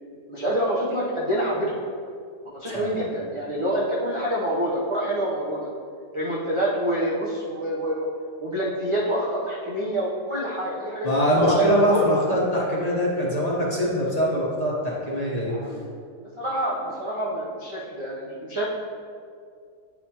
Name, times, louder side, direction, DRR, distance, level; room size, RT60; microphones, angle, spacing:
voice 1, 0.3-1.8 2.5-5.7 6.1-8.1 8.4-12.1 15.5-15.9 16.4-18.7, right 1 dB, 45° right, -7 dB, 0.4 m, -26 dB
voice 2, 11.0-15.5, equal, 30° left, -6 dB, 0.8 m, -23 dB
9.1 x 4.1 x 2.9 m, 2.2 s
omnidirectional pair, 1.8 m